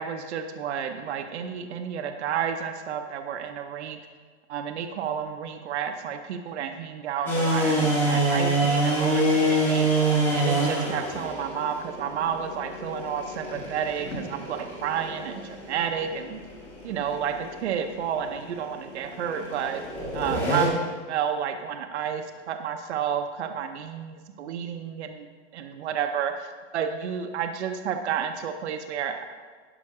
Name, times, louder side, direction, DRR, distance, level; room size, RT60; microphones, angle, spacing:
voice 1, 0.0-4.0 4.5-9.9 10.3-16.4 16.8-19.8 20.1-20.8 21.1-25.3 25.5-29.3, right 8 dB, 70° right, 6 dB, 0.8 m, -31 dB
sound 1, 7.3-20.7, right 1 dB, 5° left, 0.8 m, -27 dB
11.5 x 5.2 x 4.9 m, 1.6 s
supercardioid pair, 175°, 35 cm